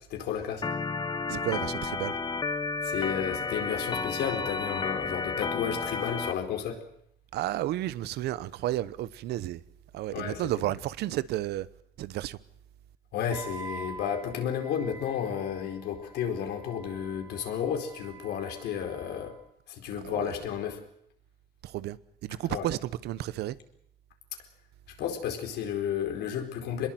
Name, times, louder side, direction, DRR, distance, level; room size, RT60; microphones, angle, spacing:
voice 1, 0.1-0.7 2.8-6.8 10.1-10.4 13.1-19.3 19.7-20.8 22.5-22.7 25.0-26.9, left 8 dB, 75° left, 4.5 m, -32 dB
Organ, 0.6-6.3, left 4 dB, 25° left, 1.1 m, -32 dB
voice 2, 1.3-2.2 7.3-9.6 9.9-11.7 12.0-12.4 20.0-20.4 21.6-22.0 22.2-23.6, right 14 dB, 75° right, 1.0 m, -32 dB
Wind instrument woodwind instrument, 13.3-19.4, right 4 dB, 20° right, 4.1 m, -47 dB
23.5 x 21.0 x 7.8 m
cardioid pair, 110°, 17 cm